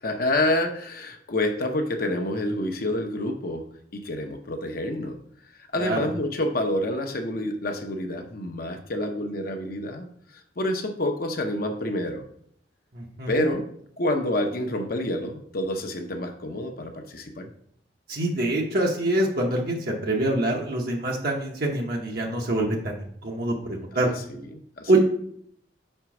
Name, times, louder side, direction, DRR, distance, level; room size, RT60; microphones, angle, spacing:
voice 1, 0.0-3.7 3.9-5.2 5.7-10.1 10.3-12.2 13.3-13.7 14.0-17.5 23.9-25.0, left 1 dB, 55° left, 4 dB, 0.7 m, -28 dB
voice 2, 12.9-13.5 18.1-24.1 24.9-25.0, right 2 dB, 60° right, -1 dB, 0.9 m, -25 dB
5.1 x 4.4 x 5.9 m, 0.67 s
head